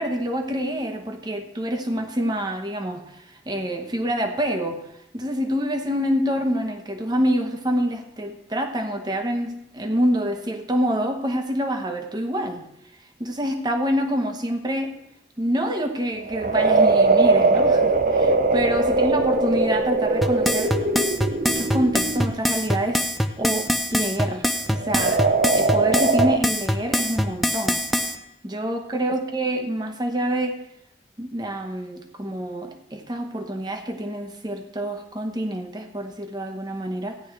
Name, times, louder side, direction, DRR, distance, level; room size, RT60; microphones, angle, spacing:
voice 1, 0.0-4.8 5.1-12.7 13.2-14.9 15.4-20.7 21.4-23.0 23.4-25.2 25.5-27.8 28.4-30.6 31.2-37.2, equal, 25° right, 5 dB, 1.0 m, -26 dB
sound 1, 16.2-22.4 24.8-26.4, right 3 dB, 50° right, 0.5 m, -20 dB
sound 2, 20.2-28.2, left 1 dB, ahead, 0.5 m, -23 dB
15.0 x 10.0 x 3.3 m, 0.83 s
head